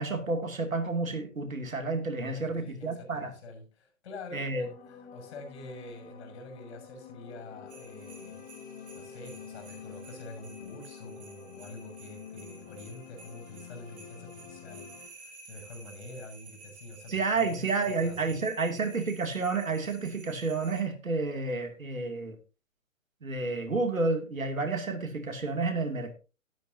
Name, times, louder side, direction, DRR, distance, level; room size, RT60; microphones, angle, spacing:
voice 1, 0.0-3.3 4.3-4.7 17.1-22.4 23.2-26.1, right 3 dB, 80° right, 2.7 m, -30 dB
voice 2, 2.2-8.4 8.9-18.5, left 2 dB, 55° left, 6.9 m, -46 dB
sound 1, 4.6-15.1, left 7 dB, 20° left, 1.6 m, -48 dB
sound 2, 7.7-20.8, right 3 dB, 50° right, 4.4 m, -53 dB
12.5 x 12.0 x 2.8 m
figure-of-eight pair, 125°, 40 cm